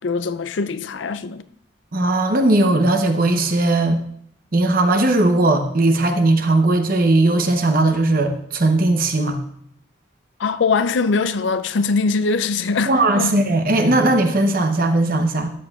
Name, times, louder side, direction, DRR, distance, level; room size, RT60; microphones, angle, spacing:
voice 1, 0.0-1.4 10.4-13.4, left 4 dB, 70° left, 0.5 m, -22 dB
voice 2, 1.9-4.0 4.5-9.4 12.9-15.5, right 2 dB, 50° right, 0.8 m, -18 dB
12.5 x 8.8 x 2.4 m
head